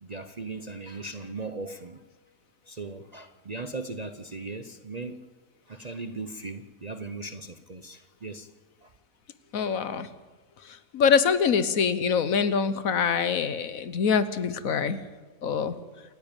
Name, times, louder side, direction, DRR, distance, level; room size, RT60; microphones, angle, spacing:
voice 1, 0.0-2.0 2.7-5.2 5.7-8.5 8.8-8.9, right 3 dB, 35° right, 9 dB, 0.7 m, -38 dB
voice 2, 9.5-10.1 10.6-15.0 15.4-15.8, left 6 dB, 70° left, 13 dB, 1.4 m, -24 dB
28.0 x 10.5 x 8.9 m, 1.3 s
omnidirectional pair, 1.5 m